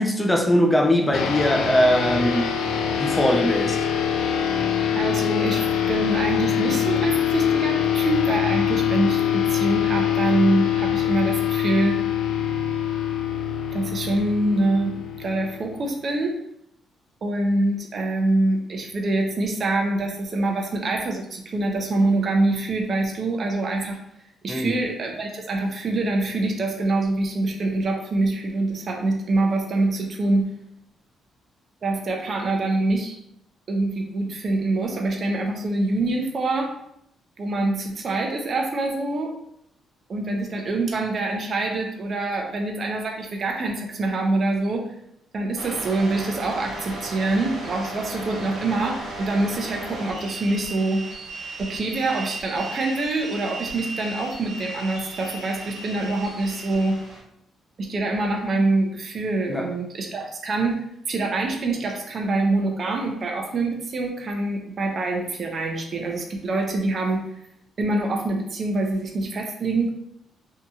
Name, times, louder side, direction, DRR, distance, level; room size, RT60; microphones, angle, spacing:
voice 1, 0.0-2.5 2.9-3.8 24.5-24.8 59.5-59.7, left 1 dB, 10° left, 0.4 m, -21 dB
sound 1, 1.1-15.9, left 9 dB, 80° left, 0.3 m, -24 dB
voice 2, 4.9-12.0 13.7-16.4 17.2-24.0 24.4-30.5 31.8-33.2 33.7-36.7 37.4-39.3 40.1-44.9 45.3-51.1 51.6-57.0 57.8-67.3 67.8-69.9, right 2 dB, 45° right, 0.5 m, -25 dB
sound 2, 45.6-57.2, right 2 dB, 90° right, 1.0 m, -36 dB
2.8 x 2.7 x 2.3 m
cardioid pair, 90°, 0 cm